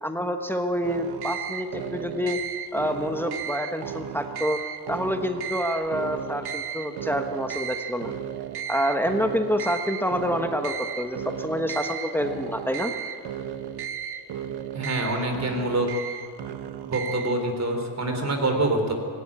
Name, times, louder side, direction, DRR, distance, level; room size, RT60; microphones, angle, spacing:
voice 1, 0.0-2.4 2.7-4.6 4.9-8.1 8.7-12.9, equal, 5° left, 6 dB, 1.2 m, -27 dB
sound 1, 0.8-17.4, right 9 dB, 60° right, 1.3 m, -34 dB
voice 2, 14.7-15.9 16.8-18.9, right 2 dB, 35° right, 4 dB, 3.8 m, -25 dB
18.0 x 18.0 x 8.8 m, 2.4 s
cardioid pair, 120°, 45 cm